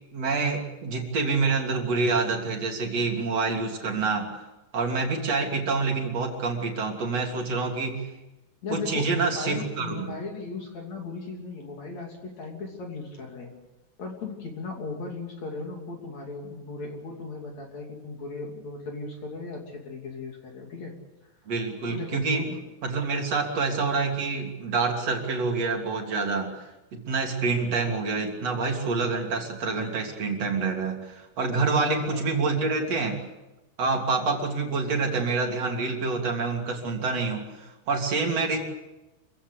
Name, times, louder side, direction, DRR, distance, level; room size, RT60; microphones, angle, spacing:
voice 1, 0.1-4.3 4.7-8.0 8.7-10.1 21.5-22.4 22.8-26.5 26.9-33.2 33.8-38.6, right 4 dB, 40° right, 1 dB, 3.8 m, -27 dB
voice 2, 8.6-13.5 14.0-20.9 21.9-22.6 31.5-32.5, left 4 dB, 45° left, 1 dB, 3.8 m, -37 dB
27.0 x 15.5 x 8.4 m, 1.0 s
omnidirectional pair, 4.9 m